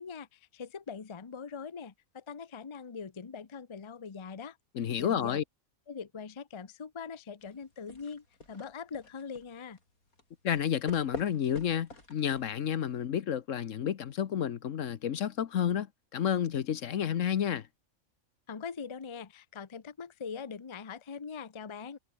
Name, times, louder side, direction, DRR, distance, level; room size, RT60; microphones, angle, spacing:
voice 1, 0.0-4.6 5.0-5.4 5.9-9.8 18.5-22.0, left 6 dB, 25° left, 0.7 m, -42 dB
voice 2, 4.7-5.4 10.4-15.9 16.1-17.7, left 9 dB, 65° left, 1.2 m, -30 dB
sound 1, 7.4-13.0, left 2 dB, 85° left, 6.3 m, -48 dB
omnidirectional pair, 1.5 m